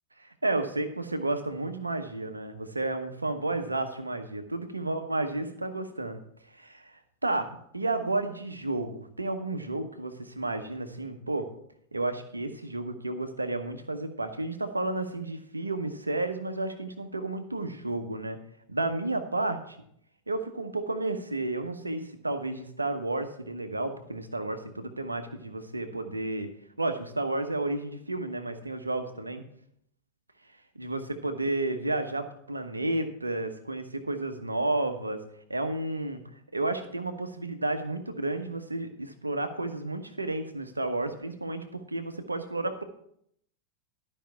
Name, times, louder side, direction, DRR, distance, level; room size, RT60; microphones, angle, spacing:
voice 1, 0.2-6.2 6.5-11.5 11.9-18.4 18.7-19.8 20.3-26.5 26.8-29.4 30.7-35.2 35.5-36.2 36.5-42.8, right 2 dB, 80° right, 8 dB, 1.0 m, -32 dB
12.5 x 5.4 x 5.8 m, 0.69 s
figure-of-eight pair, 90°, 0 cm